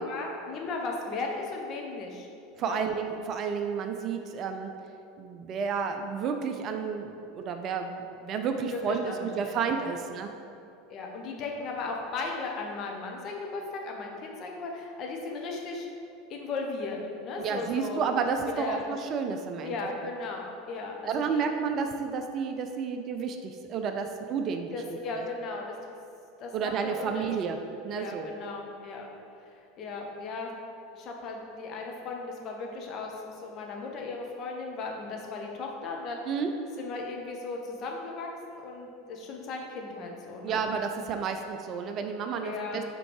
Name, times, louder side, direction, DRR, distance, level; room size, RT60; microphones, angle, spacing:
voice 1, 0.0-2.3 2.6-2.8 8.6-9.9 10.9-15.9 16.3-18.0 18.6-18.8 19.6-21.0 21.3-21.5 24.7-26.0 26.4-27.5 27.9-29.1 29.8-30.5 30.9-33.1 33.4-36.2 36.8-40.6 42.4-42.8, left 3 dB, 40° left, 0 dB, 0.9 m, -36 dB
voice 2, 2.6-4.7 5.2-10.3 17.4-19.8 21.1-24.8 25.2-25.3 26.5-27.6 27.8-28.3 36.3-36.5 40.4-42.8, right 6 dB, 40° right, 6 dB, 0.4 m, -31 dB
5.1 x 4.5 x 4.7 m, 2.6 s
figure-of-eight pair, 80°, 0 cm